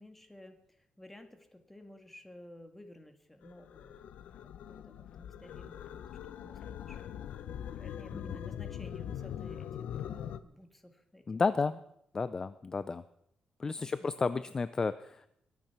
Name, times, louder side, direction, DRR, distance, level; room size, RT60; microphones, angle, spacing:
voice 1, 0.0-4.0 4.4-7.0 7.8-11.8 13.8-14.1, left 1 dB, 10° left, 6 dB, 1.9 m, -54 dB
sound 1, 3.4-10.4, left 9 dB, 85° left, 0.8 m, -42 dB
voice 2, 11.3-11.7 12.1-13.0 13.6-15.3, left 4 dB, 30° left, 14 dB, 0.5 m, -32 dB
22.0 x 9.4 x 5.9 m, 0.77 s
cardioid pair, 130°, 2 cm